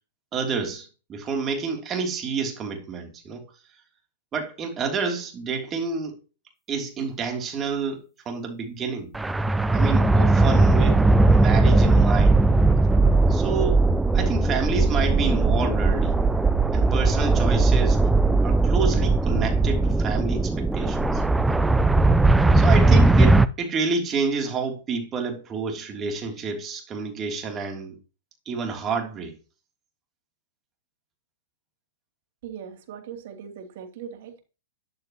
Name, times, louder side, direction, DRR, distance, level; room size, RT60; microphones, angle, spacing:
voice 1, 0.3-3.5 4.3-6.2 6.7-9.1 9.7-12.4 13.3-13.8 14.1-16.1 16.7-18.0 18.4-21.2 22.5-28.0 28.4-29.4, right 5 dB, 25° right, 3.1 m, -29 dB
sound 1, 9.1-23.5, right 2 dB, 5° right, 0.6 m, -19 dB
voice 2, 32.4-34.4, right 8 dB, 55° right, 2.9 m, -39 dB
13.0 x 11.0 x 3.0 m
hypercardioid pair, 110°, 0 cm